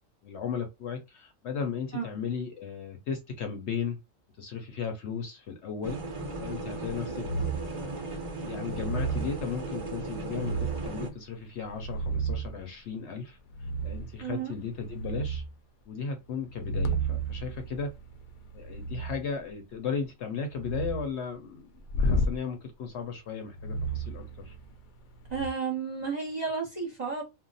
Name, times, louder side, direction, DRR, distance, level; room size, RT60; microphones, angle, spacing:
voice 1, 0.2-4.0 4.4-6.0 6.4-7.3 7.5-8.1 8.4-15.4 15.9-17.9 18.5-24.5, left 6 dB, 60° left, 0.8 m, -36 dB
sound 1, 5.8-11.1, right 2 dB, 55° right, 0.3 m, -36 dB
sound 2, 7.2-7.8 8.6-9.3 10.3-11.0 11.6-12.6 13.5-14.1 14.6-15.5 16.5-19.2 20.5-21.0 21.9-22.4 23.5-24.8 25.2-25.5, right 2 dB, 90° left, 0.4 m, -32 dB
voice 2, 14.2-14.5 25.3-27.2, right 5 dB, 40° right, 0.8 m, -32 dB
2.4 x 2.1 x 3.9 m
omnidirectional pair, 1.4 m